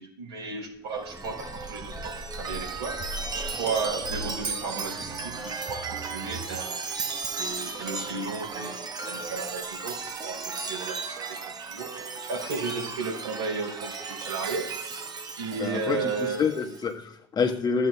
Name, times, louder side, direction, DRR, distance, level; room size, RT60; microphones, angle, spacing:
voice 1, 0.0-6.9 7.4-11.4 11.7-15.1 15.4-16.4, right 4 dB, 85° right, -2 dB, 3.3 m, -34 dB
sound 1, 0.7-8.5 9.7-9.8 10.1-10.2, equal, ahead, 0.6 m, -42 dB
Chime, 1.0-16.8, right 4 dB, 30° right, 1.0 m, -35 dB
voice 2, 15.6-17.9, left 5 dB, 30° left, 1 dB, 1.3 m, -27 dB
14.0 x 8.3 x 2.2 m, 0.69 s
hypercardioid pair, 75°, 14 cm